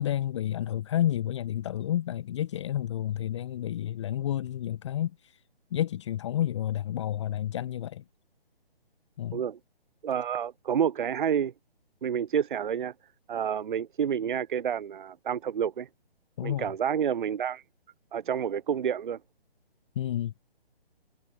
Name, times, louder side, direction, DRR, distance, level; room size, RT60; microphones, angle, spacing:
voice 1, 0.0-5.4 5.7-8.0 9.2-9.4 16.4-16.6 20.0-20.3, left 11 dB, 30° left, 1.1 m, -30 dB
voice 2, 10.0-11.5 12.0-12.9 13.3-15.9 16.4-17.6 18.1-19.2, right 8 dB, 55° right, 0.6 m, -29 dB
figure-of-eight pair, 145°, 31 cm